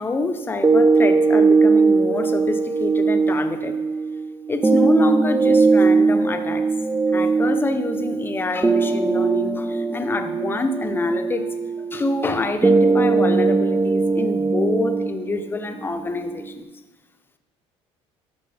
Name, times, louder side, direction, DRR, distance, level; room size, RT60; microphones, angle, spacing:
voice 1, 0.0-3.8 4.5-6.7 7.1-16.7, left 3 dB, 20° left, 7 dB, 0.7 m, -26 dB
sound 1, 0.6-16.6, right 4 dB, 10° right, 0.4 m, -20 dB
13.0 x 5.3 x 3.4 m, 1.1 s
cardioid pair, 110°, 11 cm